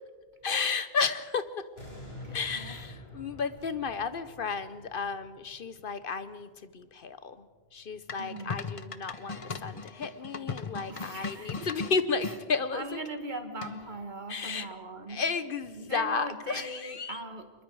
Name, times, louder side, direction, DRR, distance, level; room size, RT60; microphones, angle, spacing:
voice 1, 0.4-1.7 2.3-7.5 7.7-13.0 14.3-14.7 15.1-17.2, left 5 dB, 60° left, 13 dB, 1.0 m, -33 dB
sound 1, 1.8-6.9 7.3-7.4, left 1 dB, 80° left, 5.8 m, -48 dB
voice 2, 2.2-2.8 8.2-8.7 10.9-11.7 12.7-15.2 15.7-17.5, right 2 dB, 50° right, 7 dB, 1.7 m, -40 dB
sound 2, 8.1-12.4 13.6-14.0, left 4 dB, 35° left, 0.8 m, -38 dB
25.0 x 22.0 x 4.7 m, 1.5 s
omnidirectional pair, 1.0 m